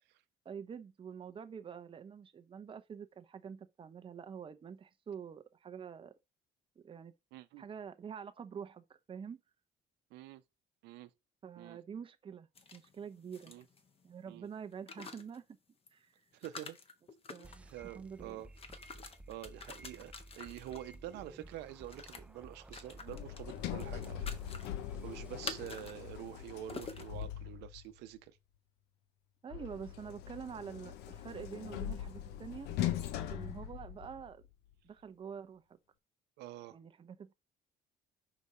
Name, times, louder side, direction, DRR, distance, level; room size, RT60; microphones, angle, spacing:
voice 1, 0.4-6.1 6.8-7.1 7.6-9.4 11.4-13.5 14.0-15.4 15.9-16.1 17.3-18.4 29.4-32.7 33.3-34.4 34.8-35.6 36.7-37.3, right 7 dB, 30° right, 0.7 m, -46 dB
voice 2, 7.3-7.6 10.1-10.4 10.8-11.1 11.6-11.8 13.5-13.6 14.3-14.5 16.3-16.8 17.6-18.5 19.3-24.7 25.0-28.3 36.4-36.8, right 13 dB, 85° right, 0.7 m, -47 dB
sound 1, 12.6-14.1 14.7-15.4 15.9-16.0 16.3-17.7 18.4-21.0 21.9-22.2 22.7-23.4 23.8-24.7 25.4-26.0 26.3-26.4 26.7-27.3, left 4 dB, 35° left, 1.0 m, -47 dB
sound 2, 17.4-26.4, right 1 dB, 5° right, 0.4 m, -55 dB
Sliding door, 23.1-27.9 29.5-34.5, left 11 dB, 90° left, 0.7 m, -41 dB
5.2 x 4.8 x 4.2 m
cardioid pair, 110°, 17 cm